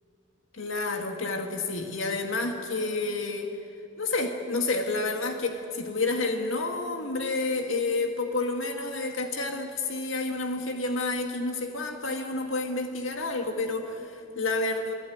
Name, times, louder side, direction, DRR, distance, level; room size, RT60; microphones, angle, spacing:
voice 1, 0.5-3.5 4.0-14.9, left 3 dB, 85° left, 4 dB, 2.0 m, -29 dB
28.0 x 19.0 x 9.4 m, 2.6 s
head